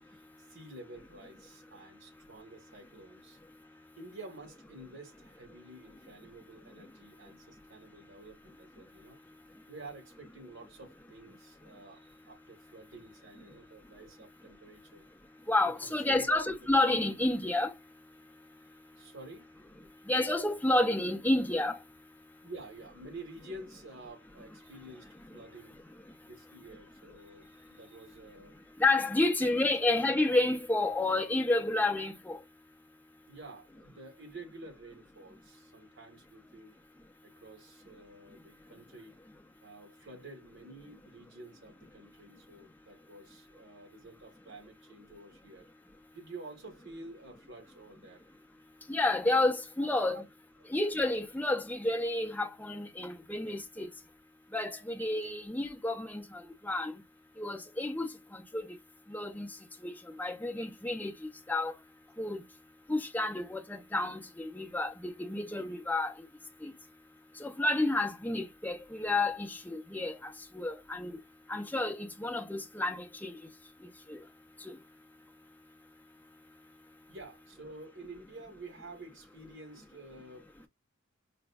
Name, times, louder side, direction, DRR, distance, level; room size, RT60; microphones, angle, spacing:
voice 1, 0.1-3.4 4.0-9.2 9.7-15.1 15.6-16.3 16.6-16.7 19.0-19.5 22.4-25.8 26.2-28.5 29.0-29.3 33.3-36.8 37.2-39.1 39.6-45.6 46.1-48.2 49.8-50.2 77.1-80.7, right 2 dB, 60° right, 1.5 m, -50 dB
voice 2, 15.5-17.7 20.1-21.8 28.8-32.4 48.9-50.2 50.7-53.9 54.5-56.9 57.4-58.7 59.1-59.5 59.8-61.1 61.5-61.7 62.2-62.4 62.9-66.1 66.6-66.7 67.4-71.1 71.5-73.4 74.1-74.2, left 2 dB, 10° left, 0.6 m, -30 dB
5.0 x 2.2 x 2.3 m
head